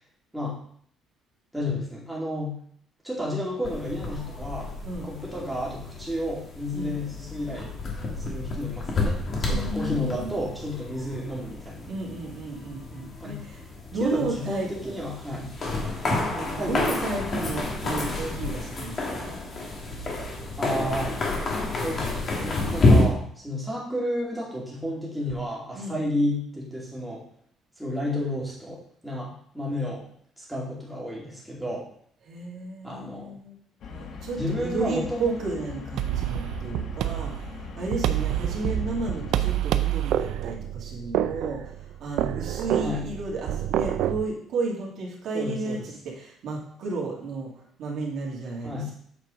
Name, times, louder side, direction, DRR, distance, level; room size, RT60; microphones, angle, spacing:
voice 1, 1.5-2.6 3.0-4.7 5.0-7.7 8.2-9.2 9.5-11.9 13.2-13.4 14.0-15.5 16.5-16.9 20.6-21.1 21.8-22.1 22.4-27.2 27.8-28.8 29.0-30.1 30.4-31.8 32.8-33.3 34.4-35.4 42.8-43.0 45.3-45.8 48.6-48.9, left 1 dB, ahead, -6 dB, 2.5 m, -31 dB
sound 1, 3.6-23.0, left 2 dB, 30° left, 1.6 m, -29 dB
voice 2, 9.4-10.3 11.9-13.7 13.9-15.0 16.1-19.4 25.7-26.0 32.2-33.6 33.9-47.5 47.8-48.9, right 3 dB, 55° right, -2 dB, 2.4 m, -33 dB
sound 2, 33.8-39.5, left 5 dB, 50° left, 1.1 m, -40 dB
sound 3, 36.0-44.2, right 12 dB, 70° right, 0.5 m, -28 dB
8.3 x 4.6 x 5.1 m, 0.62 s
cardioid pair, 165°, 0 cm